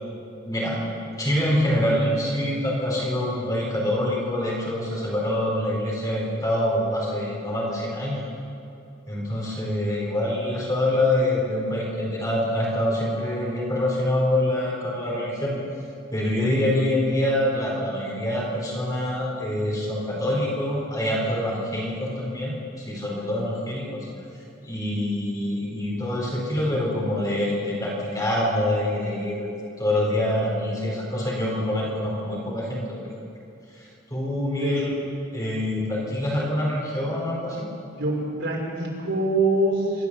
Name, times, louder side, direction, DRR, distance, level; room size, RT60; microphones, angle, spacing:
voice 1, 0.4-0.8 1.2-8.3 9.1-15.5 16.1-24.1 24.6-29.5 29.8-33.0 33.8-34.9 35.3-37.7, left 1 dB, 20° left, -4 dB, 4.1 m, -25 dB
voice 2, 34.6-35.0 38.0-40.1, right 2 dB, 65° right, -4 dB, 6.3 m, -24 dB
25.5 x 13.5 x 7.5 m, 2.7 s
head